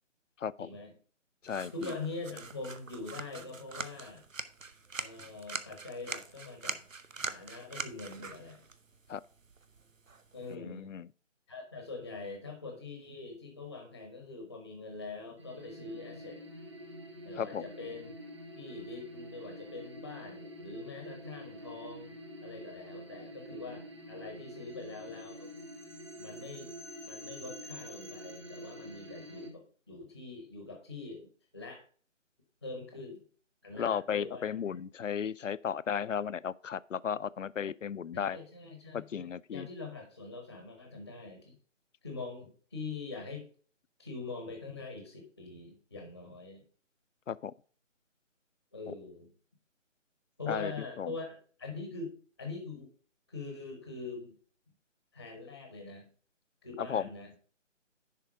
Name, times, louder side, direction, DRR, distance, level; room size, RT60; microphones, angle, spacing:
voice 1, 0.6-0.9 1.7-4.3 5.0-6.8 7.2-8.6 10.3-10.9 11.5-16.4 17.2-18.1 18.5-25.5 26.2-26.7 27.0-31.8 32.6-33.2 33.6-34.7 38.1-41.5 42.0-43.5 44.0-46.6 48.7-49.3 50.4-52.9 53.3-54.3 55.1-56.1 56.6-57.3, left 3 dB, 15° left, 0.7 m, -43 dB
voice 2, 1.4-1.9 9.1-9.2 10.5-11.1 17.4-17.6 33.8-38.4 38.9-39.7 47.3-47.5 48.9-49.0 50.5-50.7 51.0-51.1 56.8-57.1, left 8 dB, 80° left, 0.5 m, -35 dB
sound 1, 1.4-10.5, right 4 dB, 90° right, 0.8 m, -43 dB
sound 2, 15.4-29.5, equal, 25° right, 0.8 m, -47 dB
10.5 x 3.5 x 4.7 m
figure-of-eight pair, 155°, 38 cm